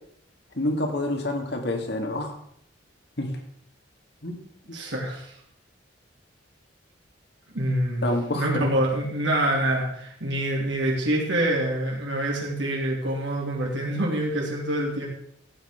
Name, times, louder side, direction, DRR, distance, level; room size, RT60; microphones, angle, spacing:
voice 1, 0.6-2.4 3.2-3.4 4.2-4.4 4.7-4.8 8.0-8.7, left 1 dB, 60° left, 3 dB, 2.3 m, -28 dB
voice 2, 4.7-5.3 7.5-8.0 8.3-15.1, right 1 dB, 70° right, -3 dB, 3.2 m, -26 dB
15.0 x 9.0 x 5.2 m, 0.68 s
head